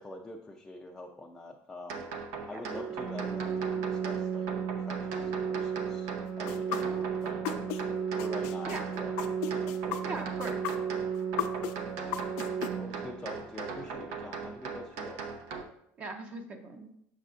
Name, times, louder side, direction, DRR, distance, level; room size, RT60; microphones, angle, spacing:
voice 1, 0.0-2.1 2.5-4.5 4.7-6.1 6.4-7.6 8.2-9.2 9.4-10.0 12.8-15.2, left 1 dB, 10° left, -1 dB, 0.4 m, -45 dB
sound 1, 1.9-15.6, right 4 dB, 80° right, 0.8 m, -40 dB
voice 2, 2.5-2.9 8.6-8.9 10.0-10.6 16.0-16.9, right 3 dB, 30° right, 5 dB, 0.6 m, -39 dB
Organ, 2.7-13.7, right 7 dB, 50° right, 1.2 m, -34 dB
sound 2, 6.5-7.8 8.2-12.7, left 11 dB, 85° left, 0.5 m, -35 dB
6.8 x 6.5 x 2.5 m, 0.72 s
cardioid pair, 160°, 5 cm